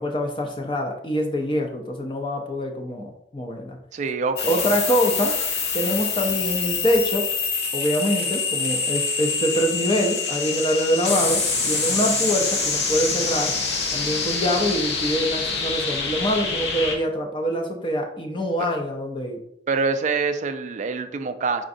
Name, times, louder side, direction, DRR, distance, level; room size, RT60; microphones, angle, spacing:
voice 1, 0.0-3.8 4.5-5.4 5.7-7.3 7.7-13.5 13.9-19.4, equal, 30° left, 3 dB, 0.5 m, -25 dB
voice 2, 3.9-4.6 18.6-18.7 19.7-21.6, right 4 dB, 45° right, 8 dB, 0.4 m, -25 dB
sound 1, 4.4-16.9, left 4 dB, 75° left, 0.8 m, -25 dB
4.9 x 3.7 x 2.6 m, 0.76 s
head